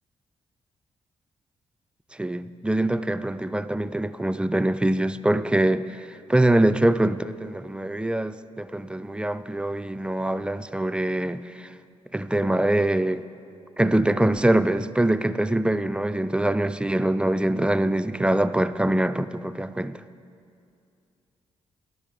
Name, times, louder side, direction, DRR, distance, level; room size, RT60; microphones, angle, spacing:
voice 1, 2.2-11.7 12.1-13.2 13.8-20.0, right 1 dB, 10° right, 0.3 m, -24 dB
10.5 x 6.5 x 5.0 m
supercardioid pair, 55°, 13 cm